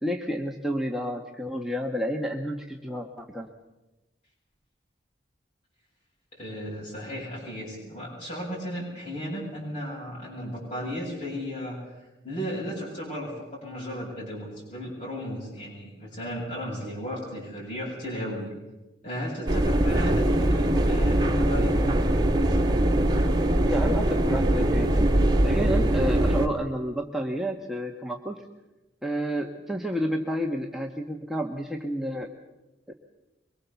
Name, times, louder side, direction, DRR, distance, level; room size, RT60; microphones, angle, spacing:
voice 1, 0.0-3.5 23.7-25.1 25.4-28.4 29.0-32.3, equal, ahead, 0 dB, 1.4 m, -30 dB
voice 2, 6.3-11.9 12.2-18.5 19.0-21.8, equal, 45° left, -5 dB, 7.6 m, -35 dB
sound 1, 19.5-26.5, right 1 dB, 25° right, 2.1 m, -22 dB
24.0 x 23.0 x 7.1 m, 1.0 s
head